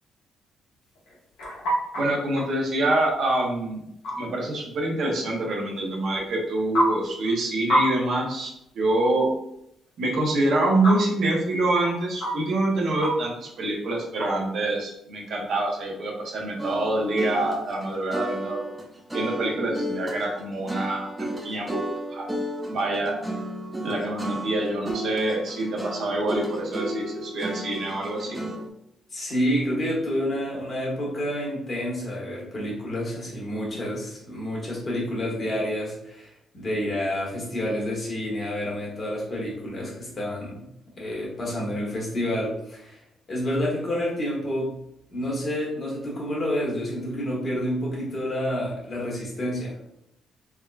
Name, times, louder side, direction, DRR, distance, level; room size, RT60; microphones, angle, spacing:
sound 1, 1.0-2.0 2.4-2.5 2.9-3.6 4.0-4.1 6.2-6.3 6.7-6.8 7.3-7.4 7.7-7.8 8.1-8.2 10.2-10.3 10.8-10.9 11.5-11.6 11.8-11.9 12.2-12.3 13.0-13.1 14.2-14.3 14.7-14.8, equal, 85° left, 1.0 m, -25 dB
voice 1, 2.0-3.8 4.2-9.3 10.0-18.6 19.1-22.3 22.7-23.2 23.8-28.4, right 2 dB, 65° right, -1 dB, 0.7 m, -26 dB
sound 2, 16.6-28.7, right 1 dB, 15° right, 0.6 m, -33 dB
voice 2, 29.1-40.6 41.0-43.0 43.3-44.7 45.1-49.7, equal, 45° left, -3 dB, 1.3 m, -29 dB
3.5 x 2.1 x 2.3 m, 0.79 s
cardioid pair, 75°, 0 cm